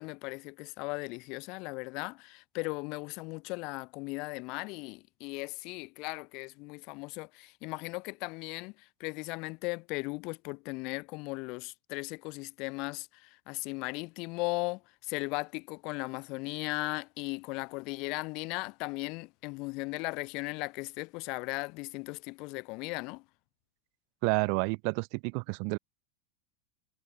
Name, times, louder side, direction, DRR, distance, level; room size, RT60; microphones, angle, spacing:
voice 1, 0.0-8.7 9.0-23.2, left 27 dB, 55° left, 0.7 m, -37 dB
voice 2, 24.2-25.8, right 40 dB or more, 60° right, 0.3 m, -30 dB
hypercardioid pair, 110°, 0 cm